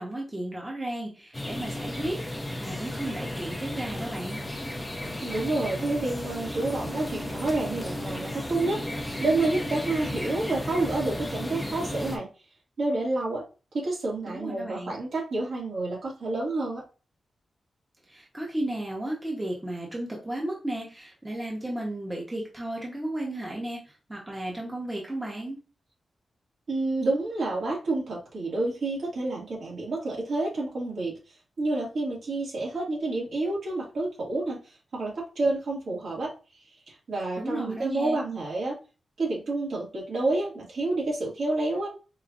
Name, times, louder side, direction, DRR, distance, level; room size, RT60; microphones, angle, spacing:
voice 1, 0.0-4.4 14.3-15.0 18.1-25.6 37.4-38.2, right 1 dB, 10° right, -2 dB, 1.0 m, -34 dB
sound 1, 1.3-12.2, left 1 dB, 15° left, 0.7 m, -34 dB
voice 2, 5.2-8.8 9.2-12.3 12.8-13.4 13.7-16.8 26.7-31.2 31.6-34.6 34.9-36.3 36.9-38.8 39.2-41.9, right 2 dB, 65° right, -4 dB, 1.9 m, -29 dB
5.0 x 2.8 x 2.5 m, 0.33 s
wide cardioid pair, 155°, 0 cm